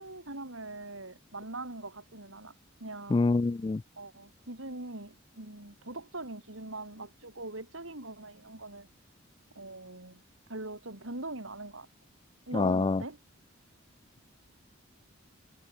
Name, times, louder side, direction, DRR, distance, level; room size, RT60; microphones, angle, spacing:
voice 1, 0.0-2.5 2.8-3.2 4.0-8.9 9.6-10.2 10.5-11.9 12.5-13.2, right 2 dB, 75° right, 5.7 m, -42 dB
voice 2, 3.1-3.8 12.5-13.0, left 3 dB, 25° left, 0.3 m, -26 dB
head